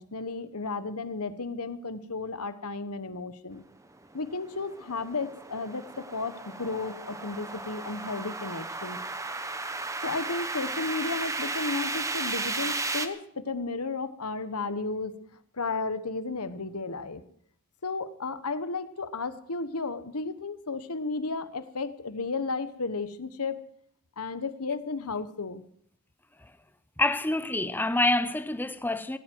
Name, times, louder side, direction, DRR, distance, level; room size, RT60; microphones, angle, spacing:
voice 1, 0.0-3.6 4.1-9.0 10.0-15.2 15.5-17.2 17.8-23.6 24.2-25.6, left 3 dB, 80° left, 1.2 m, -33 dB
sound 1, 4.0-13.1, right 3 dB, 15° right, 1.0 m, -34 dB
voice 2, 27.0-29.2, left 2 dB, 10° left, 0.7 m, -27 dB
17.0 x 16.5 x 4.6 m
head